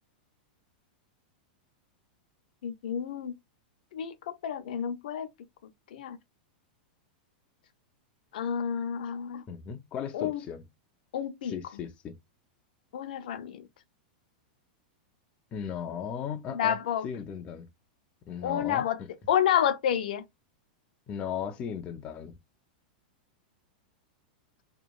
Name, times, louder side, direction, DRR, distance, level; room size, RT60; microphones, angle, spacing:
voice 1, 2.6-3.3 3.9-4.1 4.4-5.3 5.9-6.2 8.3-9.4 10.1-10.4 11.1-11.5 12.9-13.6 16.5-17.0 18.4-19.0 19.3-20.2, left 9 dB, 75° left, 0.6 m, -29 dB
voice 2, 9.5-10.6 11.5-12.2 15.5-16.8 17.0-17.7 18.3-19.1 21.1-22.3, left 7 dB, 25° left, 0.4 m, -36 dB
2.9 x 2.2 x 2.3 m
supercardioid pair, 155°, 5 cm